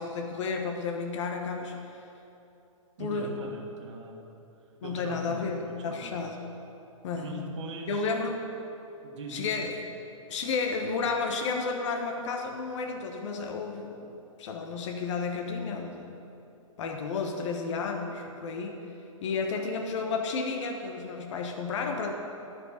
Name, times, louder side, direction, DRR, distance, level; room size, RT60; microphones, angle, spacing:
voice 1, 0.0-1.8 3.0-3.4 4.8-6.4 7.0-7.4 7.9-8.5 9.3-9.8 10.3-14.0 14.4-16.1 16.8-18.8 19.2-22.1, left 4 dB, 60° left, 2 dB, 1.2 m, -32 dB
voice 2, 3.0-4.3 4.8-6.2 7.1-8.0 9.0-9.5, right 3 dB, 55° right, 1 dB, 1.6 m, -41 dB
12.0 x 5.5 x 5.7 m, 2.8 s
hypercardioid pair, 130°, 18 cm